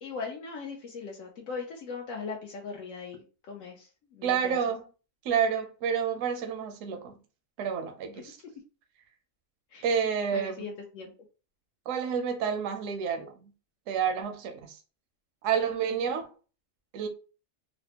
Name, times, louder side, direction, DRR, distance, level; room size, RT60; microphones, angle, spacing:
voice 1, 0.0-3.9 4.2-4.6 9.7-9.8 10.3-11.1, left 5 dB, 80° left, 1.1 m, -39 dB
voice 2, 4.2-4.8 5.2-7.1 7.6-8.4 9.8-10.7 11.9-13.5 13.9-14.8 15.4-16.3 16.9-17.1, right 7 dB, 75° right, 1.0 m, -29 dB
4.1 x 2.0 x 2.8 m
omnidirectional pair, 1.4 m